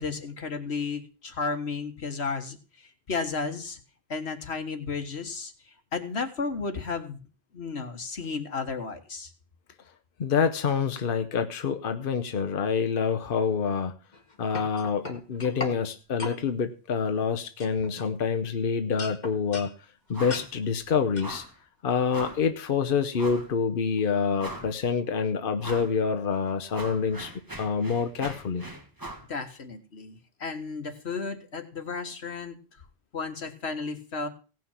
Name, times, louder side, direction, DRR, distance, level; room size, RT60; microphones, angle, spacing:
voice 1, 0.0-2.6 3.1-3.8 4.1-5.5 5.9-7.2 7.5-9.3 29.3-32.5 33.1-34.3, left 4 dB, 80° left, 7 dB, 1.9 m, -33 dB
voice 2, 10.2-14.0 14.4-19.7 20.1-21.4 21.8-27.3 27.6-28.7, left 6 dB, 60° left, 8 dB, 1.0 m, -27 dB
sound 1, 14.1-15.8 16.2-16.4 17.1-17.3 17.6-18.6 19.0-19.7 20.3-20.5 21.2-21.3, left 3 dB, 45° left, 1.9 m, -37 dB
sound 2, 20.1-20.5 20.8-20.9 21.2-21.6 22.1-22.5 23.2-23.5 24.0-24.1 24.4-24.9 25.6-26.0 26.3-29.3, right 1 dB, 20° right, 2.2 m, -40 dB
17.0 x 6.1 x 7.3 m, 0.37 s
omnidirectional pair, 1.1 m